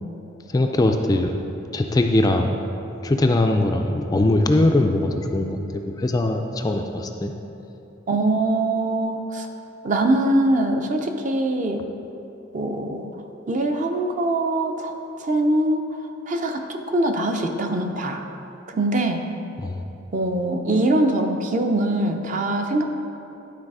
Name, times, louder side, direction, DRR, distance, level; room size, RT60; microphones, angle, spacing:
voice 1, 0.5-1.3 1.7-2.6 3.0-7.3 19.6-19.8, left 1 dB, 20° left, 4 dB, 0.3 m, -21 dB
voice 2, 8.1-9.5 9.8-11.9 12.5-13.1 13.5-14.9 15.2-15.8 16.3-18.2 18.7-19.3 20.1-22.8, right 1 dB, 40° right, 4 dB, 0.5 m, -22 dB
11.0 x 4.0 x 4.8 m, 3.0 s
head